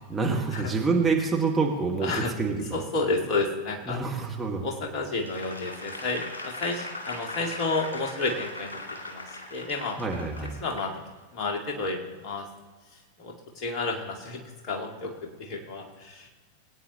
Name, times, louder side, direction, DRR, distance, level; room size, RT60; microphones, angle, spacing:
voice 1, 0.1-2.6 3.9-4.6 10.0-10.6, right 4 dB, 10° right, -1 dB, 1.8 m, -26 dB
voice 2, 2.0-2.3 2.7-4.0 4.6-8.8 9.1-9.2 9.5-10.0 10.6-10.9 11.3-12.5 13.2-15.1 15.4-16.3, left 3 dB, 40° left, 0 dB, 2.1 m, -31 dB
Applause / Crowd, 5.2-10.9 11.4-11.6, left 2 dB, 75° left, 2.1 m, -39 dB
20.5 x 9.2 x 3.0 m, 1.3 s
figure-of-eight pair, 90°, 0 cm